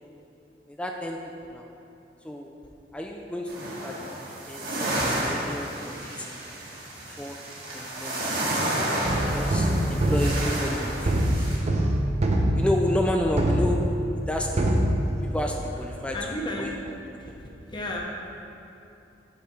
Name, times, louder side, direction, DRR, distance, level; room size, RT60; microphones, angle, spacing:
voice 1, 0.7-1.2 1.5-1.7 2.2-2.5 2.9-6.5 7.1-7.4 7.7-8.7 9.3-11.7 12.5-13.8 14.3-15.0 15.2-16.2 16.6-16.7 17.3-17.4, left 1 dB, 5° left, 1 dB, 0.3 m, -31 dB
sound 1, 3.5-11.6, right 1 dB, 60° right, 1.4 m, -31 dB
sound 2, 9.1-14.3 14.6-15.6, right 1 dB, 40° right, 0.6 m, -24 dB
voice 2, 16.1-16.9 17.2-18.0, left 1 dB, 25° left, -1 dB, 0.8 m, -33 dB
8.0 x 5.2 x 4.3 m, 2.8 s
head